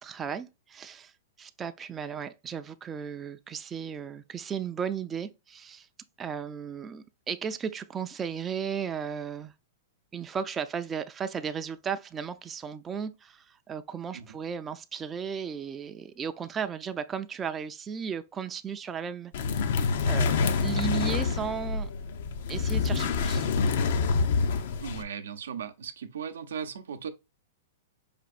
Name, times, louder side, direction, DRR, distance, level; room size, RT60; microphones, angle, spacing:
voice 1, 0.0-5.9 6.2-9.5 10.1-19.3 20.0-21.9 22.5-23.5, right 7 dB, 15° right, 0.3 m, -35 dB
sound 1, 19.3-25.0, left 5 dB, 65° left, 0.6 m, -27 dB
voice 2, 24.8-27.1, right 7 dB, 90° right, 0.6 m, -37 dB
5.1 x 2.6 x 2.4 m
hypercardioid pair, 140°, 0 cm